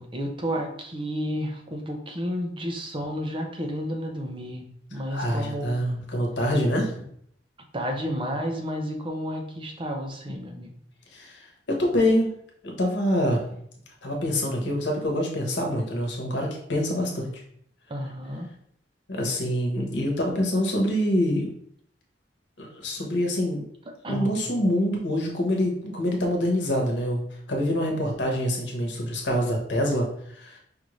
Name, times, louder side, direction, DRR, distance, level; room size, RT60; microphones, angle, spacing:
voice 1, 0.0-4.7 4.9-5.9 7.7-10.7 17.9-18.5 24.0-24.4, equal, 30° right, 2 dB, 0.6 m, -31 dB
voice 2, 5.1-7.1 11.1-12.3 12.6-13.4 14.0-17.3 19.1-21.5 22.6-23.6 24.1-30.6, equal, 85° left, 0 dB, 1.1 m, -25 dB
5.2 x 2.6 x 3.1 m, 0.68 s
head